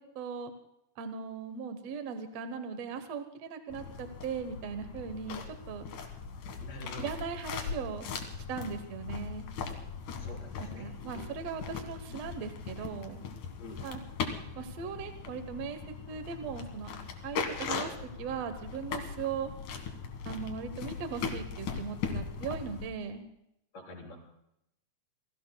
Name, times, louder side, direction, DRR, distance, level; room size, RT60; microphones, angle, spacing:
voice 1, 0.2-0.5 1.0-5.9 7.0-8.1 8.5-9.5 10.6-13.3 13.8-14.0 14.5-15.8 16.1-16.9 17.2-19.5 20.3-23.2, right 6 dB, 65° right, 8 dB, 1.8 m, -38 dB
sound 1, 3.7-22.9, left 5 dB, 70° left, 3.2 m, -39 dB
voice 2, 6.6-7.2 10.1-11.5 13.6-13.8 23.7-24.2, left 1 dB, 50° left, -1 dB, 5.1 m, -46 dB
29.0 x 21.0 x 2.2 m, 0.80 s
omnidirectional pair, 3.8 m